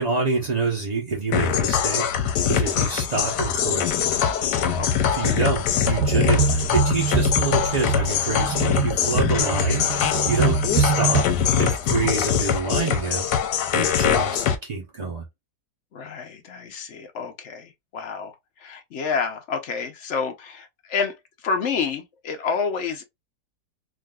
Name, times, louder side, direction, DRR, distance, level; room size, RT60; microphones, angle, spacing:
voice 1, 0.0-4.1 5.1-11.2 11.6-13.3 13.7-15.3, right 4 dB, 55° right, 0.4 m, -27 dB
sound 1, 1.3-14.6, left 8 dB, 90° left, 1.2 m, -23 dB
voice 2, 4.8-5.2 15.9-21.1 21.4-23.0, left 5 dB, 55° left, 0.9 m, -29 dB
sound 2, 6.0-11.2, right 5 dB, 75° right, 1.1 m, -24 dB
3.7 x 2.5 x 2.3 m
omnidirectional pair, 1.8 m